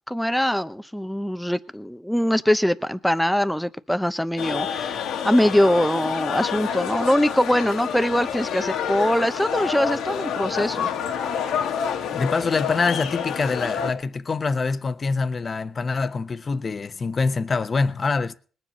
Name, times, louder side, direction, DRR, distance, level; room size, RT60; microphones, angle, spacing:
voice 1, 0.1-5.0 5.2-10.9, equal, 5° left, 0.8 m, -22 dB
sound 1, 4.4-13.9, left 8 dB, 85° left, 1.9 m, -28 dB
voice 2, 12.1-18.3, left 4 dB, 35° left, 1.0 m, -25 dB
20.0 x 7.4 x 5.4 m
cardioid pair, 90°, 0 cm